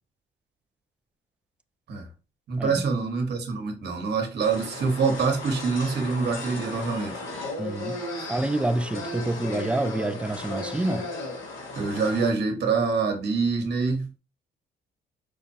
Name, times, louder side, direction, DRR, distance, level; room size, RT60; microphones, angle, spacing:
voice 1, 2.5-7.2 11.7-14.2, right 4 dB, 55° right, 1.2 m, -25 dB
sound 1, 4.4-12.3, left 2 dB, 80° left, 1.6 m, -35 dB
voice 2, 7.6-8.0 8.3-11.1, right 2 dB, 5° right, 0.3 m, -27 dB
5.1 x 2.2 x 2.8 m
cardioid pair, 90°, 20 cm